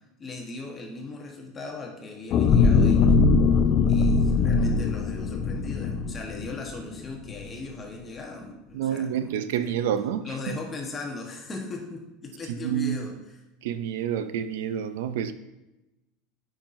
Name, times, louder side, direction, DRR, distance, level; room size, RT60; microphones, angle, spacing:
voice 1, 0.2-3.2 3.9-9.3 9.6-9.8 10.2-13.4, left 3 dB, 20° left, 1.1 m, -38 dB
sound 1, 2.3-6.8 7.3-7.4, left 4 dB, 40° left, 0.5 m, -21 dB
voice 2, 8.7-10.6 12.6-13.0 13.6-15.3, right 9 dB, 80° right, 0.5 m, -28 dB
8.8 x 5.7 x 2.6 m
supercardioid pair, 140°, 0 cm